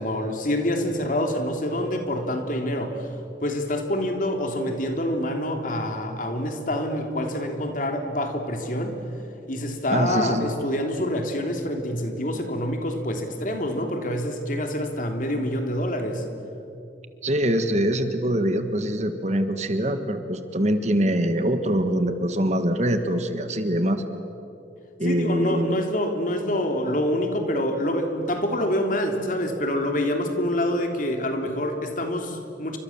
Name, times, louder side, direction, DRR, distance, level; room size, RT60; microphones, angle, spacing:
voice 1, 0.0-3.1 3.4-9.0 9.5-16.2 25.0-32.8, left 1 dB, 50° left, 4 dB, 3.1 m, -26 dB
voice 2, 9.9-10.5 17.2-24.0 25.0-25.8, right 1 dB, 40° right, 8 dB, 1.7 m, -24 dB
29.5 x 25.5 x 7.3 m, 2.7 s
head